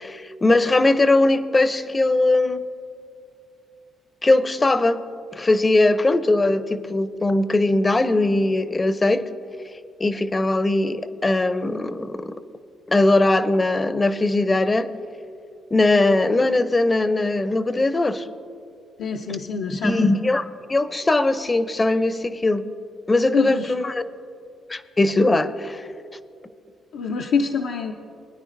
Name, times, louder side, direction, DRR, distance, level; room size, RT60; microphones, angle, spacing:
voice 1, 0.0-2.7 4.2-5.0 5.3-9.2 10.0-12.4 12.9-14.9 15.7-18.3 19.8-22.6 23.1-24.0 24.7-25.9, left 2 dB, 25° left, 12 dB, 0.5 m, -20 dB
voice 2, 19.0-20.1 23.3-23.7 26.9-27.9, left 5 dB, 85° left, 0 dB, 0.6 m, -25 dB
21.5 x 9.7 x 2.6 m, 2.4 s
cardioid pair, 80°, 0 cm